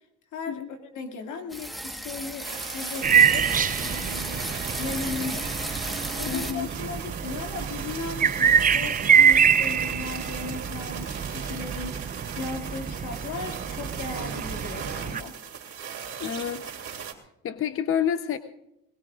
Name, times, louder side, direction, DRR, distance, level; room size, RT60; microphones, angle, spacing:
voice 1, 0.3-3.5 3.8-4.5 4.8-5.5 6.2-12.0 12.4-15.4, left 4 dB, 75° left, 4 dB, 2.5 m, -37 dB
sound 1, 1.5-6.5, right 1 dB, ahead, 1.4 m, -35 dB
sound 2, 2.4-17.1, right 7 dB, 50° right, 2.8 m, -38 dB
sound 3, 3.0-15.2, right 7 dB, 30° right, 0.6 m, -25 dB
voice 2, 6.3-6.7 16.2-16.6 17.4-18.4, left 9 dB, 45° left, 9 dB, 0.8 m, -28 dB
21.5 x 21.0 x 2.5 m, 0.84 s
cardioid pair, 100°, 30 cm